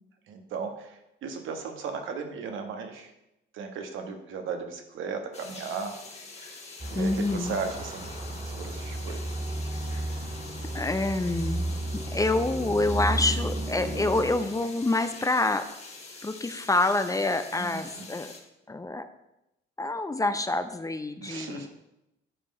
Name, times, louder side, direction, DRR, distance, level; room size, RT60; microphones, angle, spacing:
voice 1, 0.3-3.1 3.5-5.9 6.9-8.1 8.4-9.2 17.5-18.1 21.2-21.7, right 5 dB, 80° right, 5 dB, 1.3 m, -36 dB
sound 1, 5.3-18.4, left 3 dB, 35° left, 1.6 m, -45 dB
sound 2, 6.8-14.5, right 1 dB, 35° right, 2.0 m, -33 dB
voice 2, 6.9-7.6 10.7-15.7 16.2-18.3 18.7-19.1 19.8-21.7, left 2 dB, 15° left, 9 dB, 0.6 m, -27 dB
10.0 x 4.6 x 5.2 m, 0.89 s
cardioid pair, 90°, 20 cm